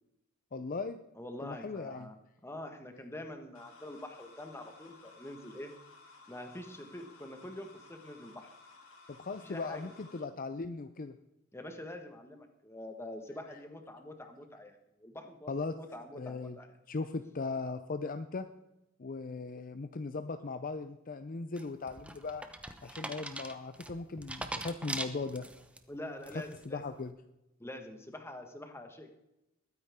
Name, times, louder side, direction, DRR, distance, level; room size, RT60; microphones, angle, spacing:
voice 1, 0.5-1.0 1.4-2.1 9.1-11.2 13.5-13.6 15.5-15.7 16.1-16.6 16.9-18.5 19.0-22.4 22.8-25.5 26.3-27.1, left 3 dB, 40° left, 9 dB, 0.6 m, -38 dB
voice 2, 1.2-2.2 2.4-5.7 6.3-8.5 9.4-9.9 11.5-16.7 25.9-26.8 27.6-29.1, left 1 dB, 10° left, 5 dB, 1.5 m, -45 dB
sound 1, 3.6-10.2, left 3 dB, 85° left, 3.2 m, -57 dB
sound 2, 21.6-25.8 26.2-26.7, right 1 dB, 5° right, 0.9 m, -41 dB
21.0 x 9.7 x 3.6 m, 0.90 s
head